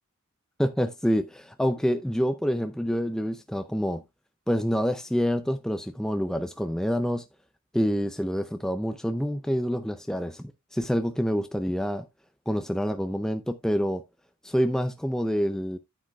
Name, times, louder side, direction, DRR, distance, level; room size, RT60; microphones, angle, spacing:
voice 1, 0.6-4.0 4.5-7.2 7.7-12.1 12.5-14.0 14.4-15.8, equal, 5° left, 0.4 m, -27 dB
9.9 x 8.9 x 2.3 m
head